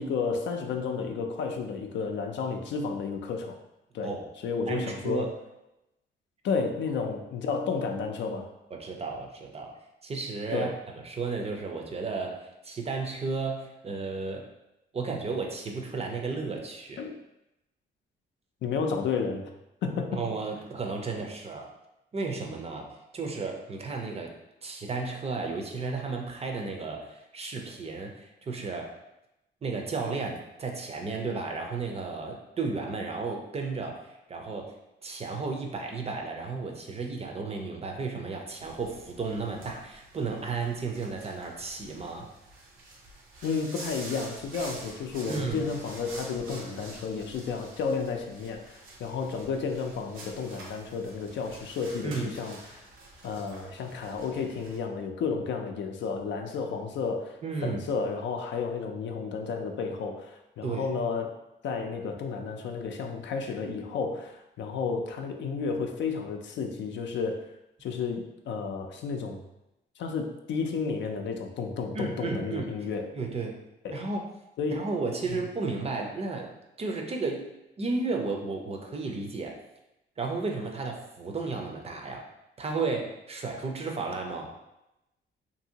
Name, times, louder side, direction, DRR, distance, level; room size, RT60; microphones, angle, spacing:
voice 1, 0.0-3.6 3.9-4.1 4.4-5.3 6.4-8.5 10.5-10.7 17.0-17.1 18.6-19.5 19.8-20.2 43.4-52.9 53.2-61.3 61.6-67.5 67.8-69.4 70.0-73.1 73.8-74.0 74.6-74.8 75.3-75.4, left 5 dB, 65° left, 4 dB, 0.4 m, -32 dB
voice 2, 4.7-5.3 8.7-14.5 14.9-17.0 20.1-21.7 22.1-24.3 24.6-28.9 29.6-34.7 35.0-42.3 45.3-45.7 52.0-52.3 57.4-57.9 60.6-60.9 71.9-72.7 73.2-73.6 73.9-74.3 74.7-76.5 76.8-77.5 77.8-79.6 80.2-82.3 82.6-84.5, right 4 dB, 30° right, 1 dB, 0.5 m, -33 dB
sound 1, 38.6-54.8, right 2 dB, 90° right, 0.7 m, -47 dB
2.8 x 2.6 x 2.8 m, 0.91 s
cardioid pair, 90°, 20 cm